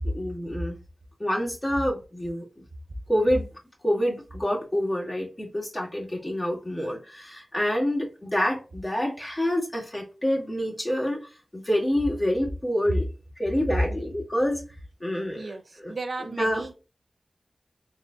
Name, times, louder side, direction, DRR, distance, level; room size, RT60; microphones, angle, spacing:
voice 1, 0.0-0.8 1.2-2.6 3.1-3.5 3.8-13.1 13.4-14.6 15.0-15.5 15.8-15.9 16.2-16.6, equal, 30° left, 1.9 m, -27 dB
voice 2, 15.3-16.7, right 3 dB, 75° right, 0.6 m, -35 dB
3.6 x 3.4 x 2.6 m
cardioid pair, 45°, 0 cm